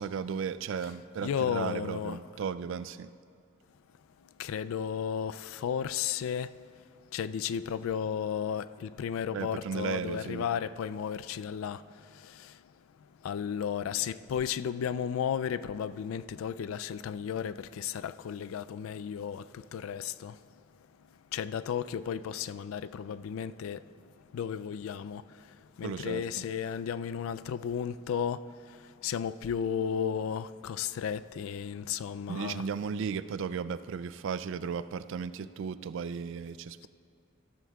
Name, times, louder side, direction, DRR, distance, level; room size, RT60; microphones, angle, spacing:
voice 1, 0.0-3.1 9.3-10.4 25.8-26.4 32.3-36.9, right 6 dB, 60° right, 0.3 m, -35 dB
voice 2, 1.2-2.2 4.4-6.5 7.1-11.8 13.2-19.4 19.7-20.3 21.3-23.8 24.3-25.2 25.8-28.4 29.0-32.6, left 8 dB, 75° left, 0.3 m, -33 dB
14.5 x 13.5 x 2.3 m
head